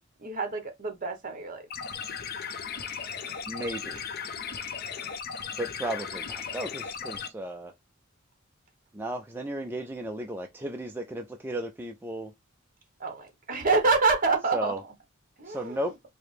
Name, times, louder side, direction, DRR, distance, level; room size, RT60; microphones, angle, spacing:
voice 1, 0.2-1.6 13.0-14.7 15.4-15.8, right 4 dB, 45° right, 1.1 m, -27 dB
sound 1, 1.7-7.3, left 6 dB, 50° left, 0.5 m, -36 dB
voice 2, 3.5-4.0 5.6-7.7 8.9-12.3 14.5-14.8 15.5-16.0, right 1 dB, 10° right, 0.3 m, -34 dB
4.8 x 2.0 x 3.2 m
head